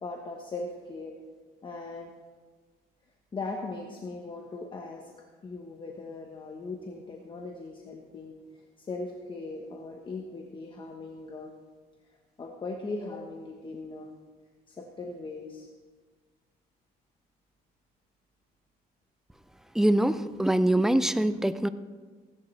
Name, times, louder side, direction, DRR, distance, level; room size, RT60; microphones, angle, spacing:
voice 1, 0.0-1.1 1.6-2.1 3.3-5.1 5.4-11.5 12.1-14.1 14.7-15.7, left 3 dB, 30° left, 1 dB, 1.2 m, -39 dB
voice 2, 19.7-21.7, right 1 dB, 5° right, 12 dB, 0.5 m, -24 dB
17.0 x 11.5 x 3.3 m, 1.4 s
cardioid pair, 110°, 17 cm